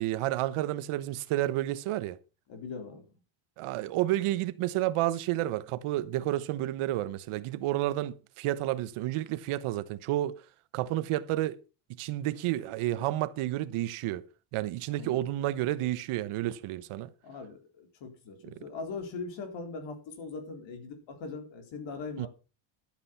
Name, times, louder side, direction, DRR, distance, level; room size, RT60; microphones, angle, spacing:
voice 1, 0.0-2.2 3.6-10.4 10.7-11.6 11.9-14.2 14.5-17.1 22.2-22.3, right 15 dB, 80° right, 1.1 m, -30 dB
voice 2, 2.5-3.0 14.9-15.2 17.2-22.3, left 4 dB, 60° left, 3.9 m, -40 dB
12.0 x 8.5 x 5.7 m
cardioid pair, 160°, 50 cm